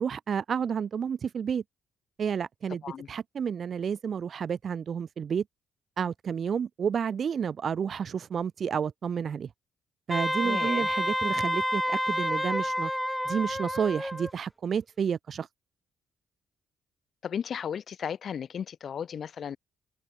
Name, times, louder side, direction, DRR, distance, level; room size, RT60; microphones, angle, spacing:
voice 1, 0.0-1.6 2.2-2.8 3.1-5.4 6.0-9.5 10.1-12.9 13.2-15.5, right 7 dB, 50° right, 0.8 m, -30 dB
Wind instrument woodwind instrument, 10.1-14.3, equal, ahead, 3.6 m, -29 dB
voice 2, 10.4-10.9 17.2-19.6, left 8 dB, 55° left, 6.8 m, -35 dB
open air
cardioid pair, 90°, 0 cm